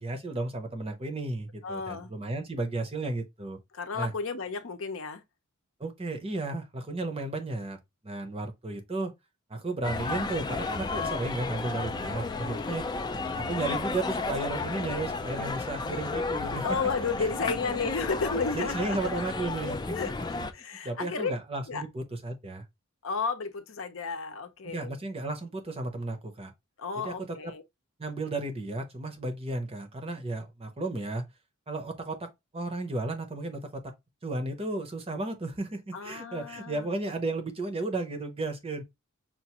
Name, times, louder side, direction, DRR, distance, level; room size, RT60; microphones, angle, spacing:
voice 1, 0.0-3.6 3.9-4.1 5.8-7.8 8.0-9.1 9.5-12.9 13.1-16.8 17.2-17.6 18.5-20.0 20.8-22.6 24.6-26.5 27.0-27.5 28.0-31.2 31.7-33.9 34.2-38.8, right 2 dB, 25° right, 0.7 m, -34 dB
voice 2, 1.6-2.1 3.7-5.2 16.6-19.2 19.9-21.3 21.7-21.8 23.0-24.9 26.8-27.6 35.9-36.9, left 4 dB, 60° left, 0.7 m, -33 dB
sound 1, 9.8-20.5, left 3 dB, 20° left, 0.3 m, -33 dB
5.7 x 2.5 x 2.9 m
head